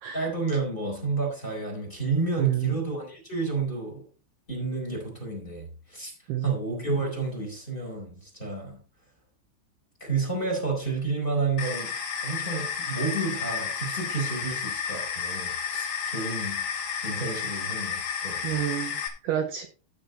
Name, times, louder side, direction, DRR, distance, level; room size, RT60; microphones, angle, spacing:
voice 1, 0.1-4.0 4.5-6.1 6.4-8.8 10.0-11.9 12.2-15.9 16.1-16.6 17.0-18.6, right 3 dB, 10° left, 4.1 m, -30 dB
voice 2, 2.4-2.8 6.3-6.5 18.4-19.0 19.2-19.7, right 12 dB, 75° right, 2.5 m, -28 dB
sound 1, 11.6-19.1, left 7 dB, 50° left, 2.4 m, -32 dB
14.0 x 6.0 x 4.1 m
omnidirectional pair, 5.4 m